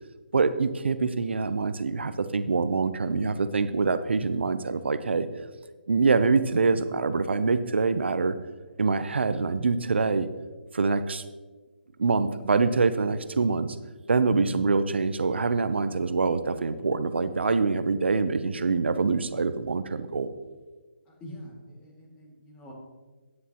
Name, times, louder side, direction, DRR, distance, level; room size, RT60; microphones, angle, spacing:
voice 1, 0.3-5.3 5.9-8.3 8.8-10.3 10.7-11.2 12.0-13.8 14.1-20.3, right 4 dB, 80° right, 12 dB, 0.7 m, -25 dB
voice 2, 21.1-22.7, equal, 15° left, -3 dB, 2.2 m, -45 dB
13.5 x 9.7 x 2.9 m, 1.3 s
hypercardioid pair, 160°, 6 cm